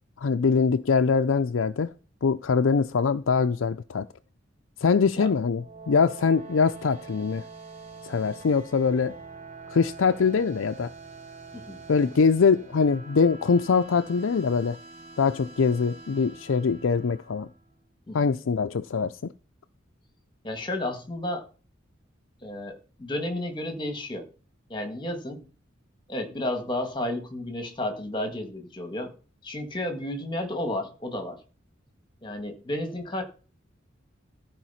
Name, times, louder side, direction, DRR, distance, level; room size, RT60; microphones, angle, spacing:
voice 1, 0.2-1.9 2.2-4.1 4.8-7.4 8.0-9.1 9.7-10.9 11.9-14.8 15.2-17.5 18.1-19.3, left 5 dB, 85° left, 0.5 m, -23 dB
sound 1, 5.4-17.7, right 4 dB, 40° right, 3.7 m, -45 dB
voice 2, 20.4-21.4 22.4-24.3 24.7-25.4 26.1-29.1 29.4-31.4 32.2-33.2, left 1 dB, 25° left, 1.9 m, -32 dB
14.0 x 5.0 x 5.7 m
head